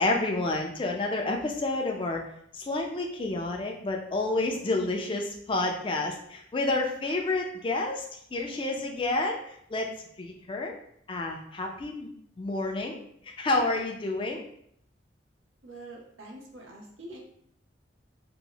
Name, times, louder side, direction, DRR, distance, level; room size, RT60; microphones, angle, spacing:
voice 1, 0.0-2.2 2.5-9.4 9.7-10.7 11.1-12.1 12.4-14.4, left 2 dB, 25° left, 1 dB, 0.4 m, -29 dB
voice 2, 15.6-17.2, right 2 dB, 90° right, 0 dB, 0.8 m, -45 dB
2.9 x 2.0 x 3.8 m, 0.69 s
head